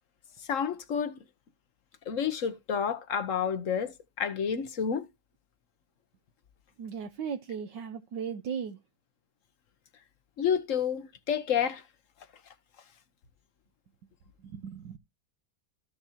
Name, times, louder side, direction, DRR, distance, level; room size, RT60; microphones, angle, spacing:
voice 1, 0.4-1.2 2.1-5.1 10.4-11.8, left 7 dB, 50° left, 1.1 m, -30 dB
voice 2, 6.8-8.8 14.4-15.0, right 7 dB, 70° right, 1.5 m, -37 dB
14.5 x 6.5 x 2.8 m
omnidirectional pair, 2.1 m